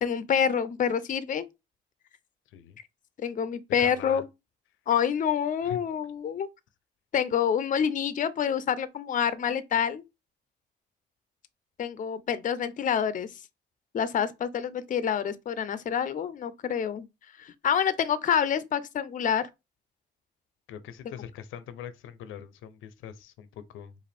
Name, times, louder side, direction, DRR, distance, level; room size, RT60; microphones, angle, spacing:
voice 1, 0.0-1.5 3.2-4.2 4.9-6.5 7.1-10.0 11.8-13.3 13.9-17.1 17.4-19.5, left 8 dB, 40° left, 0.5 m, -27 dB
voice 2, 2.5-2.8 3.8-4.2 5.6-5.8 20.7-24.0, left 9 dB, 90° left, 0.6 m, -42 dB
4.9 x 2.5 x 3.3 m
cardioid pair, 90°, 20 cm